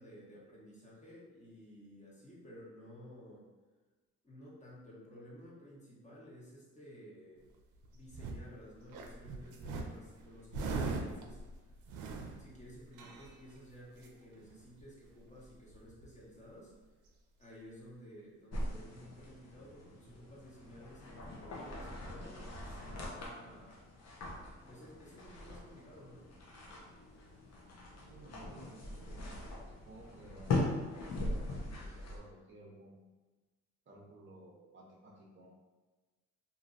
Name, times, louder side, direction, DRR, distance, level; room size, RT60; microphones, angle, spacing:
voice 1, 0.0-3.5 4.2-7.5 7.9-11.4 12.4-16.7 17.4-23.8 24.7-26.3, equal, 25° left, -6 dB, 1.0 m, -54 dB
sound 1, 7.5-8.5 8.9-13.6 14.0-14.1 14.3-14.8 15.1-15.2 15.4-16.2 17.1-17.2, right 3 dB, 80° right, 0.5 m, -41 dB
sound 2, 18.5-32.2, left 2 dB, 60° left, 0.7 m, -41 dB
voice 2, 28.1-29.3 29.8-33.0 33.9-35.5, right 1 dB, 40° right, -2 dB, 0.6 m, -55 dB
2.9 x 2.5 x 2.5 m, 1.3 s
cardioid pair, 90°, 30 cm